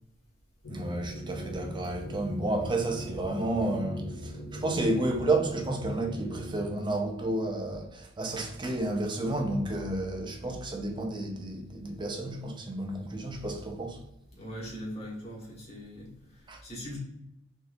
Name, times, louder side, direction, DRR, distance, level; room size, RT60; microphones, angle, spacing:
sound 1, 0.6-6.7, right 1 dB, 80° left, 0.6 m, -39 dB
voice 1, 0.7-14.0 16.5-16.6, right 2 dB, 20° right, 0.5 m, -31 dB
voice 2, 14.3-17.0, equal, 30° left, 1.4 m, -41 dB
4.0 x 2.6 x 2.6 m
head